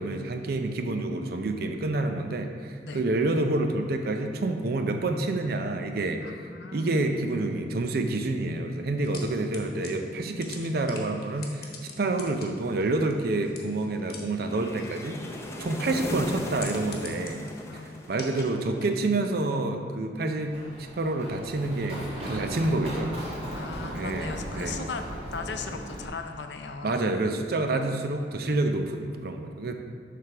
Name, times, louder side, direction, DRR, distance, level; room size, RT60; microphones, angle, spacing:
voice 1, 0.0-15.2 15.6-17.5 17.7-17.8 18.1-20.6 20.9-22.0 22.3-23.1 23.9-24.8 26.8-29.7, right 2 dB, 55° right, 5 dB, 0.5 m, -28 dB
voice 2, 6.2-7.1 17.4-18.1 23.5-25.0 25.3-27.0, left 5 dB, 75° left, 6 dB, 0.5 m, -38 dB
sound 1, 9.0-19.1, left 4 dB, 55° left, 1.0 m, -46 dB
sound 2, 14.4-18.6, left 1 dB, 15° left, 0.6 m, -37 dB
Run, 20.4-26.1, equal, 35° right, 1.7 m, -37 dB
7.7 x 3.4 x 5.9 m, 2.3 s
head